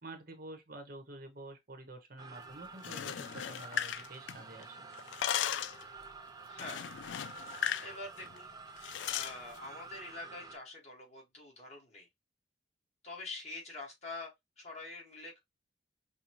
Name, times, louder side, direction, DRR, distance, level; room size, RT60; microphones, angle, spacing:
voice 1, 0.0-4.9, right 2 dB, 50° right, 1.0 m, -49 dB
sound 1, 2.2-10.6, right 4 dB, 20° right, 0.5 m, -50 dB
sound 2, 2.7-4.6 4.9-5.8 6.6-7.9 8.2-8.4 8.8-9.4, left 10 dB, 70° left, 0.3 m, -36 dB
voice 2, 6.5-6.9 7.8-8.5 9.0-12.1 13.0-15.4, left 2 dB, 35° left, 1.6 m, -45 dB
5.5 x 2.2 x 2.9 m
head